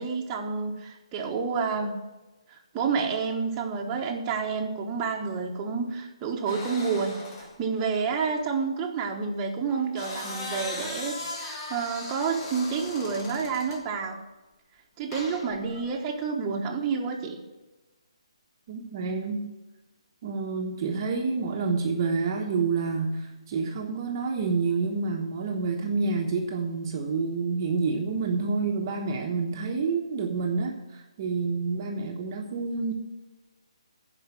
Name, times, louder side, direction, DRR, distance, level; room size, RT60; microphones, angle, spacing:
voice 1, 0.0-2.0 2.5-7.2 7.6-14.2 15.0-17.4, right 5 dB, 20° right, -1 dB, 1.4 m, -29 dB
sound 1, 6.5-7.6 9.7-13.9 15.1-15.9, left 2 dB, 30° left, 2.0 m, -38 dB
voice 2, 18.7-19.4 20.2-32.9, right 4 dB, 35° right, 1 dB, 1.2 m, -28 dB
11.5 x 5.1 x 7.7 m, 1.1 s
figure-of-eight pair, 145°, 3 cm